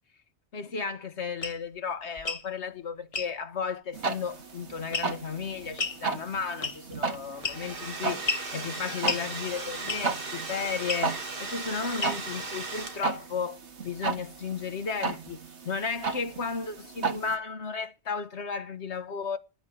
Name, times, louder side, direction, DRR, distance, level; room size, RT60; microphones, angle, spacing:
voice 1, 0.5-19.4, left 5 dB, 80° left, 1.7 m, -34 dB
sound 1, 1.4-1.6 2.2-2.5 3.1-3.3 4.9-5.3 5.8-6.0 6.6-7.0 7.4-7.8 8.3-8.5 9.1-9.3 9.9-10.2 10.9-11.1 12.0-12.4, left 4 dB, 35° left, 1.0 m, -31 dB
sound 2, 3.9-17.4, right 4 dB, 90° right, 1.9 m, -35 dB
Domestic sounds home sounds, 7.2-13.3, right 3 dB, 55° right, 2.0 m, -37 dB
10.5 x 9.1 x 9.9 m
omnidirectional pair, 1.1 m